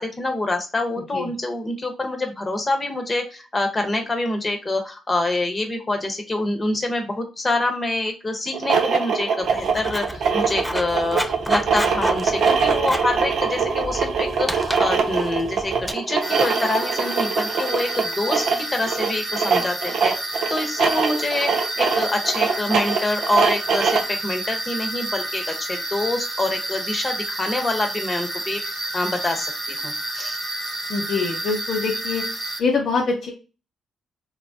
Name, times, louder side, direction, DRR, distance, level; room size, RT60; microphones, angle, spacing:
voice 1, 0.0-20.1 20.5-30.4, left 2 dB, 30° left, 4 dB, 0.9 m, -26 dB
sound 1, 8.5-24.2, right 5 dB, 65° right, 0.5 m, -23 dB
Writing, 9.4-15.9, equal, 5° left, 0.3 m, -32 dB
sound 2, 16.2-32.6, right 1 dB, 40° right, 1.1 m, -30 dB
voice 2, 30.9-32.2 32.6-33.3, left 4 dB, 60° left, 0 dB, 0.5 m, -24 dB
3.0 x 2.2 x 2.6 m, 0.32 s
hypercardioid pair, 45°, 0 cm